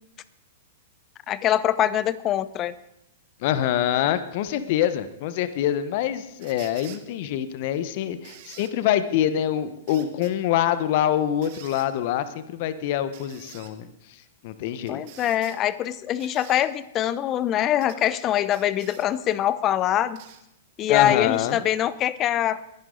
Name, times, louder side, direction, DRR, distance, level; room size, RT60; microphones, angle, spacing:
voice 1, 1.3-2.8 14.9-20.2 20.8-22.6, left 11 dB, 30° left, 17 dB, 0.8 m, -23 dB
voice 2, 3.4-15.0 20.9-21.6, left 11 dB, 50° left, 13 dB, 1.1 m, -25 dB
sound 1, 6.4-7.0 8.2-8.7 9.9-10.3 11.4-11.9 13.1-13.7 14.9-15.6 16.2-16.7 17.8-18.0 18.5-19.1 20.1-20.4 21.3-21.4, right 12 dB, 50° right, 1.6 m, -47 dB
22.0 x 11.0 x 3.9 m, 0.84 s
hypercardioid pair, 110°, 0 cm